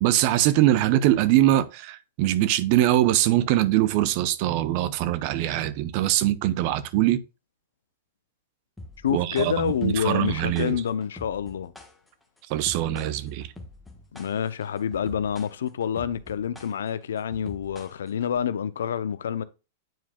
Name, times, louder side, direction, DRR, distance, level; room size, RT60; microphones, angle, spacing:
voice 1, 0.0-7.2 9.1-10.8 12.5-13.5, right 14 dB, 50° right, 0.6 m, -22 dB
sound 1, 8.8-18.4, left 2 dB, 5° left, 1.2 m, -45 dB
voice 2, 9.0-11.7 14.1-19.4, left 8 dB, 80° left, 0.5 m, -28 dB
9.0 x 4.7 x 2.2 m
hypercardioid pair, 115°, 0 cm